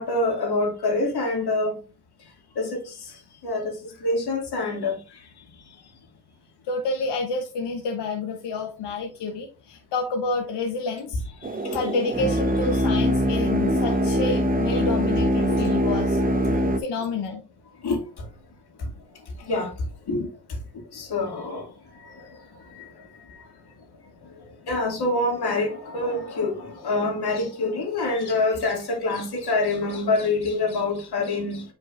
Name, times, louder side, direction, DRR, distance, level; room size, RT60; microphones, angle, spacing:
voice 1, 0.0-1.8 2.6-2.8 3.4-3.8 4.0-5.0 15.5-15.7 17.8-18.0 19.5-19.7 20.1-20.3 20.9-21.6 24.7-31.6, left 2 dB, 70° left, 2.5 m, -25 dB
voice 2, 6.6-11.2 11.7-16.2 16.8-17.4, left 3 dB, 85° left, 1.1 m, -29 dB
sound 1, 11.4-16.8, equal, 20° right, 1.1 m, -23 dB
8.9 x 4.5 x 2.6 m
cardioid pair, 65°, 41 cm